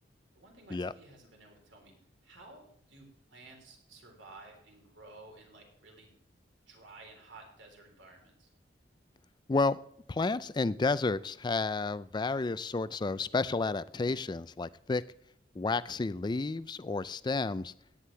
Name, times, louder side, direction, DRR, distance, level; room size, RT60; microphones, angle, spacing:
voice 1, 0.3-2.0 2.2-6.2 6.7-8.5, right 2 dB, 90° right, 1 dB, 3.8 m, -54 dB
voice 2, 10.1-15.0 15.6-17.7, left 3 dB, 25° left, 17 dB, 0.4 m, -31 dB
17.0 x 10.0 x 3.4 m, 0.72 s
head